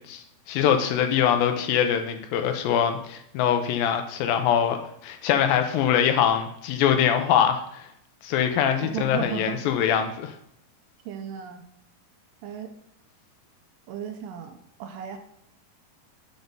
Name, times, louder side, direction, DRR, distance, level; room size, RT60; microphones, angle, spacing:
voice 1, 0.1-4.8 5.0-7.9 8.2-10.3, left 9 dB, 85° left, 7 dB, 2.4 m, -23 dB
voice 2, 8.9-9.5 11.1-11.7 12.4-12.7 13.9-15.2, right 8 dB, 80° right, 6 dB, 2.3 m, -34 dB
6.1 x 5.2 x 5.4 m, 0.72 s
omnidirectional pair, 4.2 m